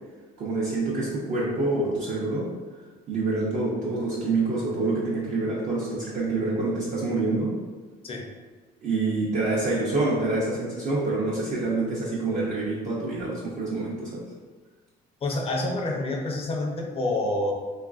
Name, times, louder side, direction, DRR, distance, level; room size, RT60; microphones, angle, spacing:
voice 1, 0.4-2.5 3.1-7.6 8.8-14.2, right 3 dB, 45° right, -7 dB, 0.6 m, -26 dB
voice 2, 15.2-17.5, left 2 dB, 35° left, 1 dB, 0.5 m, -27 dB
3.1 x 2.4 x 2.3 m, 1.4 s
cardioid pair, 110°, 17 cm